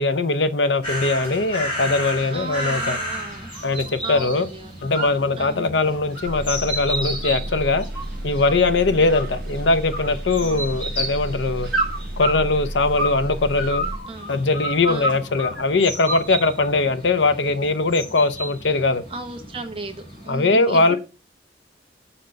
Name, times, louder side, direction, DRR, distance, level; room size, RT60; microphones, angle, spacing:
voice 1, 0.0-3.0 3.6-4.5 4.8-7.8 8.2-11.7 12.2-13.9 14.3-19.0 20.3-21.0, left 3 dB, 85° left, 0.7 m, -21 dB
sound 1, 0.8-20.3, right 1 dB, 30° left, 4.2 m, -34 dB
voice 2, 2.3-3.5 4.0-4.9 5.4-5.7 8.9-9.1 10.4-10.7 14.1-14.3 14.9-15.2 19.1-21.0, right 3 dB, 30° right, 1.0 m, -35 dB
sound 2, 2.8-3.0 3.4-4.3 4.6-5.5 5.9-8.7 9.1-9.6 9.9-10.9 11.7-13.2 13.5-15.6 16.1-16.8, right 1 dB, 5° left, 2.5 m, -29 dB
sound 3, 6.2-14.0, right 1 dB, 60° right, 0.9 m, -32 dB
6.3 x 4.4 x 5.2 m
head